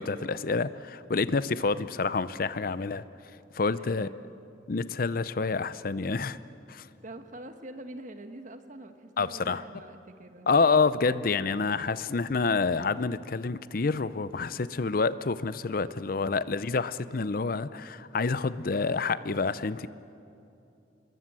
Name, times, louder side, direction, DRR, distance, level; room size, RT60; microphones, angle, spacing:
voice 1, 0.0-3.0 3.5-4.1 4.7-6.4 6.7-6.9 9.2-9.6 10.5-19.9, left 4 dB, 50° left, 16 dB, 0.6 m, -28 dB
voice 2, 3.8-4.3 6.8-10.5, right 1 dB, 45° right, 8 dB, 1.3 m, -45 dB
26.5 x 21.5 x 7.6 m, 2.8 s
head